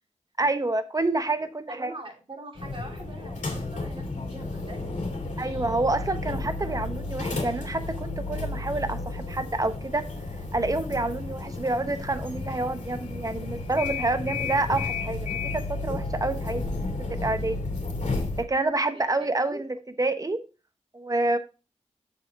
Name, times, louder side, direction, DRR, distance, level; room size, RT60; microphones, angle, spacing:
voice 1, 0.4-1.9 5.4-10.1 10.5-16.6 17.2-17.6 18.4-19.7 20.0-20.4 20.9-21.4, right 2 dB, 30° right, 10 dB, 1.0 m, -28 dB
voice 2, 1.7-4.9 18.9-19.6, right 2 dB, 45° right, 1 dB, 3.0 m, -43 dB
sound 1, 2.5-18.4, left 3 dB, 90° left, 2.3 m, -32 dB
7.1 x 7.0 x 3.6 m, 0.32 s
wide cardioid pair, 65°, 12 cm